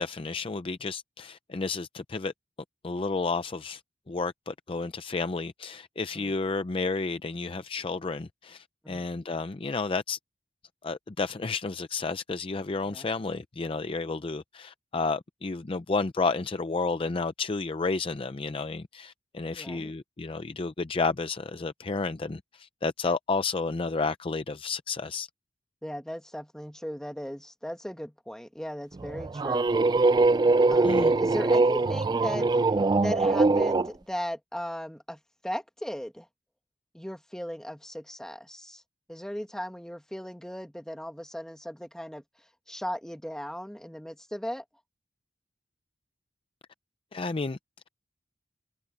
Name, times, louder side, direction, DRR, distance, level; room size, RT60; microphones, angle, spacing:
voice 1, 0.0-2.3 2.8-3.8 4.1-10.2 10.8-25.3 30.8-31.1 47.1-47.6, left 4 dB, 30° left, 0.5 m, -31 dB
voice 2, 19.5-19.9 25.8-29.7 30.7-32.5 33.0-36.3 36.9-38.8 39.1-42.2 42.7-44.6, equal, 5° left, 1.6 m, -37 dB
sound 1, 29.0-33.9, right 3 dB, 25° right, 0.3 m, -22 dB
head